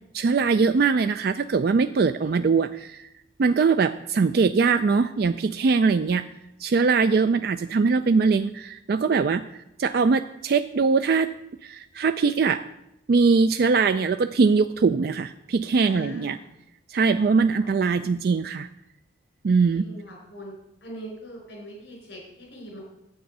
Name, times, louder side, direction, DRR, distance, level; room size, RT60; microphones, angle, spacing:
voice 1, 0.1-3.1 3.4-6.2 6.6-11.3 11.6-12.6 13.1-16.4 16.9-18.7 19.4-19.9, right 4 dB, 55° right, 11 dB, 0.3 m, -22 dB
voice 2, 15.8-16.5 17.4-17.7 19.7-20.5 20.8-22.8, right 1 dB, 70° left, -1 dB, 4.3 m, -41 dB
10.5 x 8.2 x 5.4 m, 0.85 s
head